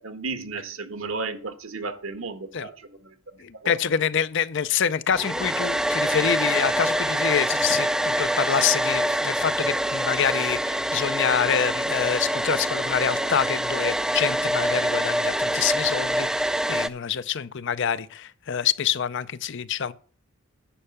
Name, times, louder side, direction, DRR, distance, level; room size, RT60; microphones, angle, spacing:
voice 1, 0.0-3.8 7.7-7.8, right 3 dB, 65° right, 1.3 m, -34 dB
voice 2, 3.4-7.9 8.2-19.9, left 8 dB, 55° left, 0.5 m, -26 dB
Domestic sounds home sounds, 5.1-16.9, right 1 dB, 5° right, 0.3 m, -25 dB
10.0 x 5.6 x 7.0 m
head